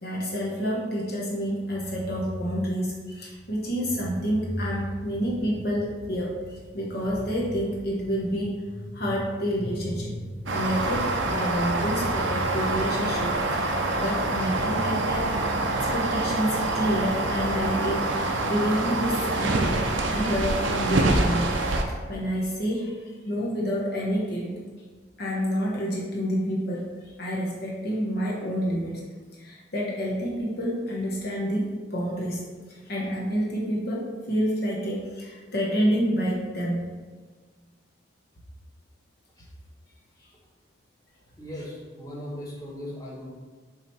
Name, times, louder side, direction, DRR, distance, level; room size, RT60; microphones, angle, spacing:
voice 1, 0.0-15.3 15.9-19.8 20.1-21.5 21.8-24.5 25.2-26.9 27.2-29.0 29.4-32.4 32.7-36.9, equal, 50° left, -4 dB, 1.0 m, -28 dB
sound 1, 10.5-21.8, right 2 dB, 70° right, 0.7 m, -26 dB
voice 2, 41.4-43.3, left 1 dB, 20° left, -5 dB, 1.3 m, -38 dB
7.6 x 3.1 x 4.6 m, 1.4 s
head